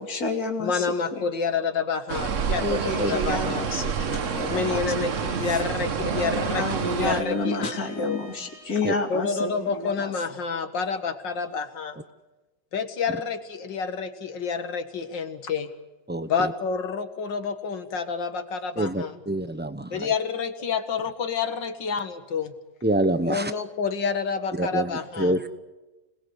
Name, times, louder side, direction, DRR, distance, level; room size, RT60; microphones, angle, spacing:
voice 1, 0.0-1.3 2.6-5.6 6.6-10.1, left 2 dB, 55° left, 3 dB, 3.1 m, -30 dB
voice 2, 0.6-3.6 4.5-8.2 9.1-12.0 12.7-15.7 16.3-19.1 19.9-22.5 23.2-25.4, left 5 dB, 80° left, 8 dB, 2.4 m, -29 dB
sound 1, 2.1-7.2, right 6 dB, 50° right, 1.3 m, -28 dB
Bowed string instrument, 3.7-8.9, right 1 dB, 75° right, 7.4 m, -49 dB
voice 3, 16.1-16.5 18.8-20.1 22.8-23.5 24.5-25.5, right 1 dB, 10° right, 11 dB, 0.4 m, -26 dB
26.0 x 20.5 x 8.2 m, 1.1 s
omnidirectional pair, 1.9 m